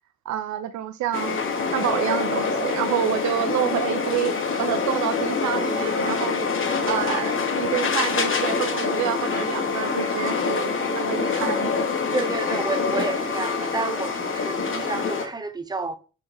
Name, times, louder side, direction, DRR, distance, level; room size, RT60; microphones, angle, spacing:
voice 1, 0.3-6.5 6.9-11.7, right 11 dB, 70° right, 0.5 m, -28 dB
sound 1, 1.1-15.3, left 5 dB, 45° left, 1.1 m, -25 dB
voice 2, 12.1-16.0, right 3 dB, 15° right, 0.6 m, -30 dB
4.3 x 3.6 x 3.3 m
supercardioid pair, 55°, 29 cm